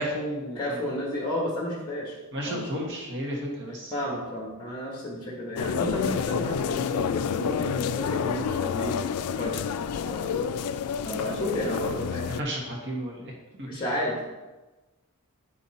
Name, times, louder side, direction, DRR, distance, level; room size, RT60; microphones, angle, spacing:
voice 1, 0.0-0.8 2.3-3.9 12.3-13.3 13.6-13.8, equal, 55° right, -1 dB, 1.5 m, -32 dB
voice 2, 0.5-2.2 2.4-2.7 3.9-10.4 11.0-12.5 13.7-14.3, left 1 dB, 20° left, -3 dB, 1.4 m, -32 dB
sound 1, 5.6-12.4, left 7 dB, 75° left, 0.3 m, -29 dB
8.2 x 5.6 x 4.1 m, 1.2 s
head